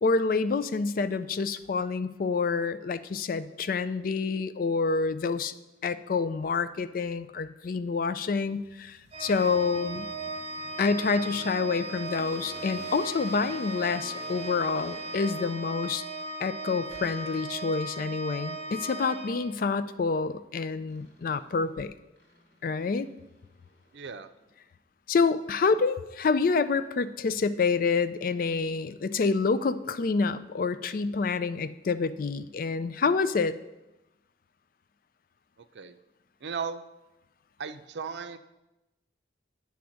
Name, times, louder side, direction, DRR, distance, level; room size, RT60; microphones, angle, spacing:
voice 1, 0.0-5.5 5.8-10.1 10.8-16.1 16.4-21.9 22.6-23.1 25.1-33.6, left 4 dB, 50° left, 13 dB, 0.4 m, -28 dB
sound 1, 8.4-16.0 16.9-17.7 20.9-21.7 22.2-24.5, equal, 70° left, 2.4 m, -51 dB
Organ, 9.1-20.0, right 2 dB, 35° right, 0.5 m, -37 dB
voice 2, 23.9-24.3 35.6-36.0 36.4-36.8 37.6-38.4, right 5 dB, 80° right, 10 dB, 0.5 m, -36 dB
10.0 x 3.5 x 6.3 m, 0.97 s
head